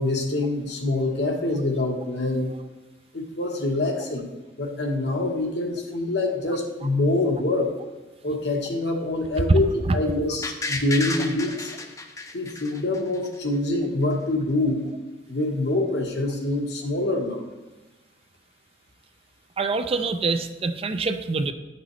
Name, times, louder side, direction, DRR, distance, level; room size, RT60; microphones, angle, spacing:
voice 1, 0.0-2.5 3.1-4.3 4.6-7.7 8.2-11.7 12.3-14.9 15.3-17.4, left 2 dB, 70° left, 2 dB, 1.2 m, -25 dB
sound 1, 10.4-13.4 13.7-13.8, left 3 dB, 20° left, 0.6 m, -32 dB
voice 2, 19.6-21.5, right 3 dB, 35° right, 9 dB, 0.4 m, -25 dB
11.0 x 6.0 x 3.1 m, 1.1 s
head